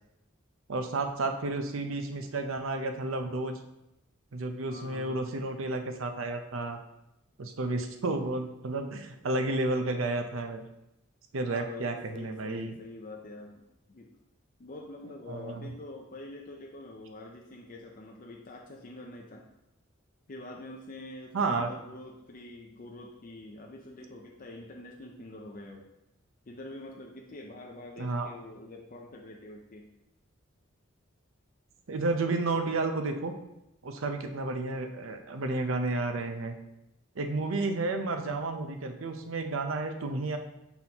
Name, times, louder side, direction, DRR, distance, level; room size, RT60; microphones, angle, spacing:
voice 1, 0.7-3.6 4.3-6.8 7.4-10.6 11.3-12.7 15.3-15.7 21.3-21.7 28.0-28.3 31.9-33.3 33.8-36.5 37.2-40.4, right 2 dB, 75° right, 6 dB, 0.6 m, -31 dB
voice 2, 4.7-5.2 11.4-14.1 14.6-19.5 20.3-25.9 26.5-29.9, left 2 dB, 45° left, 0 dB, 0.6 m, -45 dB
6.0 x 5.6 x 2.9 m, 0.88 s
head